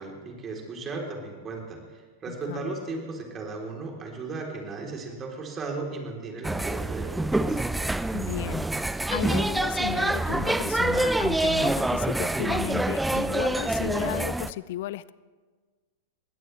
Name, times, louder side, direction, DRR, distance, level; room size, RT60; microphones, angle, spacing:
voice 1, 0.0-7.6, right 3 dB, 25° right, 1 dB, 3.7 m, -36 dB
voice 2, 2.3-2.7 8.1-15.1, left 14 dB, 60° left, 20 dB, 0.5 m, -34 dB
sound 1, 6.4-14.5, right 2 dB, 5° right, 0.5 m, -26 dB
21.5 x 17.0 x 3.4 m, 1.4 s
hypercardioid pair, 100°, 0 cm